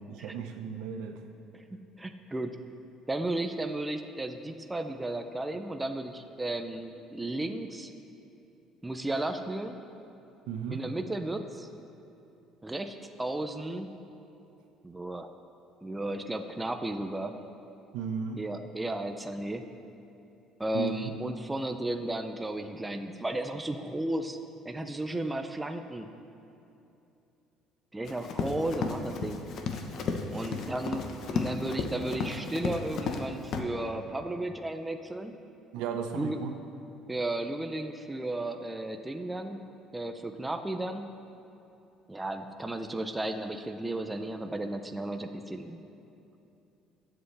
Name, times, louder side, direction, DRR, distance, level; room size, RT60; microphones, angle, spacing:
voice 1, 0.1-1.2 10.5-10.8 17.9-18.4 20.7-21.1 30.3-30.6 35.7-36.5, right 7 dB, 80° right, 6 dB, 0.9 m, -35 dB
voice 2, 1.5-2.6 3.1-7.9 8.8-9.8 10.7-11.7 12.6-13.9 14.8-15.3 15.8-17.3 18.4-19.7 20.6-24.4 24.6-26.1 27.9-29.5 30.3-31.0 31.3-35.4 36.2-36.4 37.1-39.7 39.9-41.1 42.1-45.8, right 1 dB, 10° right, 6 dB, 0.5 m, -34 dB
Run, 28.1-33.2 33.5-33.6, left 5 dB, 50° left, 0.9 m, -33 dB
20.0 x 7.8 x 3.4 m, 2.8 s
cardioid pair, 145°, 0 cm